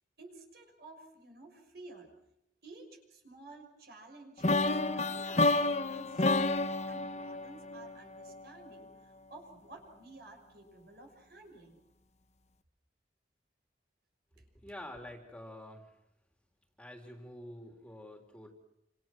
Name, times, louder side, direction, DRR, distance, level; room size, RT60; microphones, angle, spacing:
voice 1, 0.2-2.1 2.6-11.8, right 2 dB, 60° right, 4 dB, 6.2 m, -53 dB
sound 1, 4.4-8.4, left 2 dB, 40° left, 1.1 m, -30 dB
voice 2, 14.3-16.0 16.8-18.5, left 1 dB, 5° left, 2 dB, 3.3 m, -48 dB
28.0 x 27.5 x 6.1 m, 0.81 s
head